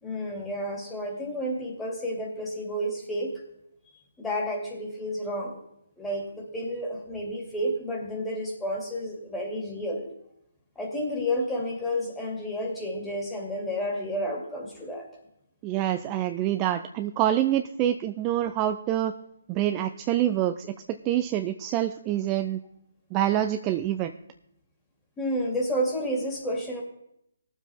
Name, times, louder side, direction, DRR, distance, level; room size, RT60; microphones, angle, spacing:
voice 1, 0.0-3.4 4.2-5.6 6.0-10.1 10.8-15.1 25.2-26.8, equal, 10° left, -2 dB, 2.3 m, -31 dB
voice 2, 15.6-19.1 19.5-22.6 23.1-24.1, right 12 dB, 20° right, 7 dB, 0.4 m, -26 dB
19.0 x 7.4 x 3.5 m, 0.78 s
hypercardioid pair, 150°, 0 cm